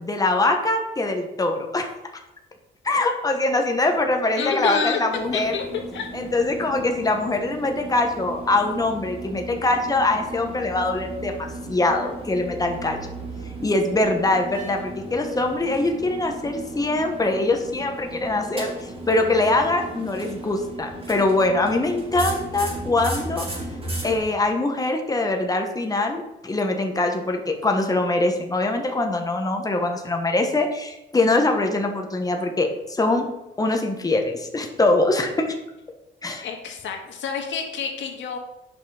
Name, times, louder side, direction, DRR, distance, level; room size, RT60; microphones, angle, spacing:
voice 1, 0.0-1.9 2.8-5.5 6.1-13.0 13.6-23.5 24.0-33.3 33.6-35.5 36.2-36.4, left 2 dB, 20° left, 3 dB, 1.3 m, -23 dB
voice 2, 4.4-5.0 5.3-6.1 36.4-38.4, left 6 dB, 70° left, 2 dB, 1.9 m, -28 dB
sound 1, 5.1-24.2, right 2 dB, 30° right, 3.3 m, -35 dB
8.5 x 5.6 x 5.0 m, 0.95 s
cardioid pair, 90°, 20 cm